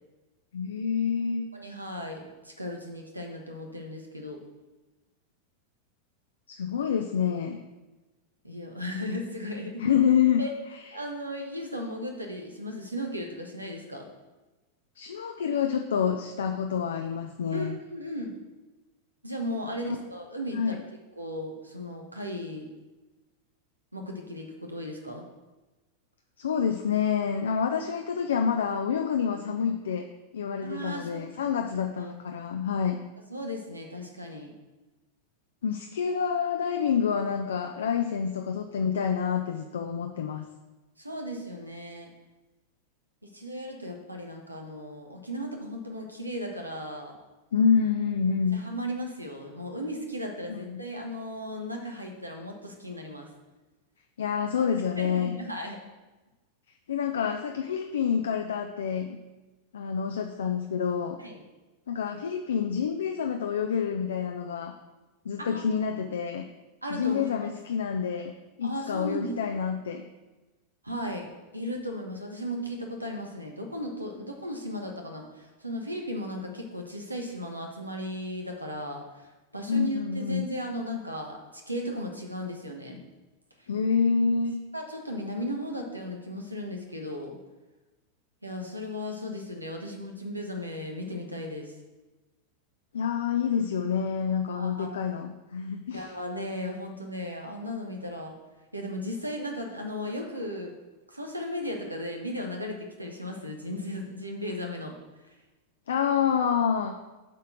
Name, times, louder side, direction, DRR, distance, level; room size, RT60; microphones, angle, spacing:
voice 1, 0.5-1.4 6.5-7.6 9.8-10.4 15.0-17.8 19.8-20.0 20.5-20.8 26.4-30.0 30.3-33.0 35.6-40.5 47.5-48.6 50.5-50.8 54.2-55.4 56.9-59.2 59.7-61.2 61.9-64.7 65.2-66.5 66.9-68.3 68.6-70.0 79.7-80.4 83.7-84.6 92.9-96.1 105.9-107.0, left 7 dB, 65° left, 4 dB, 0.5 m, -27 dB
voice 2, 1.5-4.4 8.4-9.9 10.4-10.5 10.9-14.1 17.5-18.3 19.2-20.8 21.2-22.7 23.9-25.2 28.1-28.2 30.6-31.5 32.0-32.1 33.3-34.5 41.0-42.1 43.2-47.2 48.5-53.3 54.9-55.8 61.2-61.4 65.4-65.6 66.8-67.3 68.6-69.4 70.8-83.0 83.6-83.7 84.7-87.4 88.4-91.7 94.5-94.9 95.9-98.4 98.7-100.8 101.1-105.0, equal, 85° right, 2 dB, 1.3 m, -36 dB
7.1 x 4.4 x 6.4 m, 1.1 s
figure-of-eight pair, 90°, 0 cm